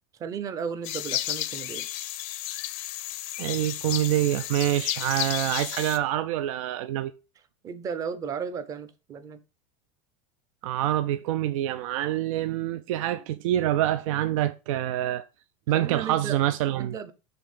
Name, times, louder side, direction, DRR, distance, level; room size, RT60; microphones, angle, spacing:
voice 1, 0.2-1.9 7.6-9.4 15.7-16.4 16.7-17.1, right 6 dB, 20° right, 0.5 m, -34 dB
sound 1, 0.8-6.0, left 14 dB, 50° left, 0.6 m, -32 dB
voice 2, 3.4-7.1 10.6-15.2 15.7-17.0, right 13 dB, 85° right, 0.5 m, -26 dB
5.2 x 3.4 x 5.6 m
supercardioid pair, 170°, 17 cm